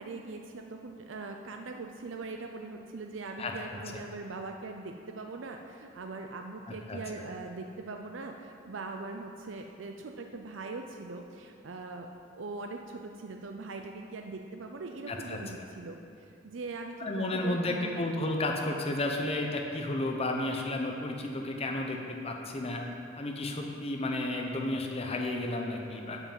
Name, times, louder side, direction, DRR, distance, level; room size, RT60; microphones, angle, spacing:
voice 1, 0.0-17.9, right 3 dB, 70° right, 3 dB, 0.6 m, -41 dB
voice 2, 6.7-7.0 15.1-15.4 17.0-22.8 23.2-26.2, left 2 dB, 30° left, 1 dB, 0.9 m, -32 dB
9.0 x 5.9 x 7.4 m, 2.5 s
head